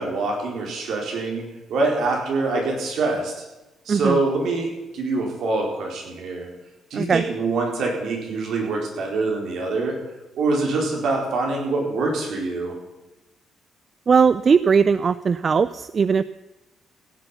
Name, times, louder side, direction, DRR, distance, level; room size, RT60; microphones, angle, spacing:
voice 1, 0.0-1.4 1.7-3.4 3.9-4.7 4.9-6.5 6.9-10.0 10.4-12.8, right 3 dB, 70° right, 0 dB, 4.3 m, -24 dB
voice 2, 6.9-7.2 14.1-16.2, right 6 dB, 40° right, 15 dB, 0.4 m, -19 dB
15.5 x 7.8 x 7.1 m, 1.0 s
cardioid pair, 90°, 0 cm